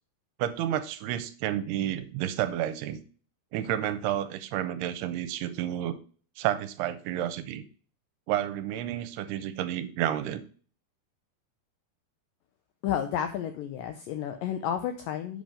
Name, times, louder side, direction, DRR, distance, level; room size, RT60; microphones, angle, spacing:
voice 1, 0.4-3.0 3.5-6.0 6.4-7.6 8.3-10.4, right 11 dB, 80° right, 13 dB, 2.6 m, -30 dB
voice 2, 12.8-15.4, left 9 dB, 85° left, 7 dB, 1.9 m, -31 dB
7.6 x 5.6 x 5.0 m, 0.42 s
omnidirectional pair, 4.7 m